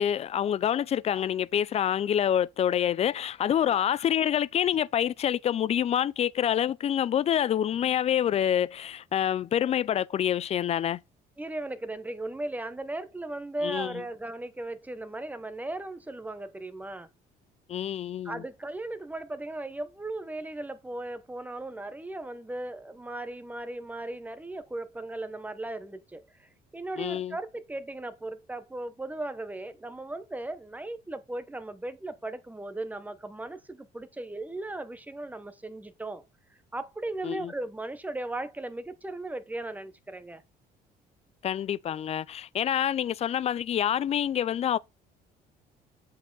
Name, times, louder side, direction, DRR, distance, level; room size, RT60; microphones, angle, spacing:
voice 1, 0.0-11.0 13.6-13.9 17.7-18.4 27.0-27.4 37.2-37.5 41.4-44.8, left 10 dB, 40° left, 0.4 m, -27 dB
voice 2, 11.4-17.1 18.2-36.2 36.7-40.4, right 2 dB, 10° right, 0.9 m, -37 dB
8.2 x 4.7 x 4.0 m
cardioid pair, 110°, 17 cm